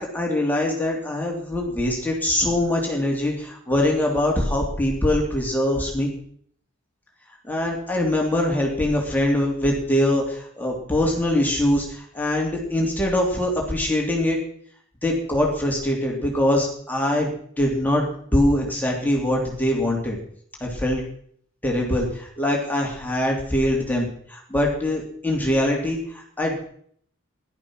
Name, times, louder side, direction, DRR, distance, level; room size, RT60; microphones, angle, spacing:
voice 1, 0.0-6.1 7.4-14.4 15.0-17.3 17.6-20.2 20.6-21.0 21.6-26.6, left 1 dB, 10° left, -1 dB, 3.2 m, -23 dB
16.5 x 12.0 x 6.3 m, 0.62 s
head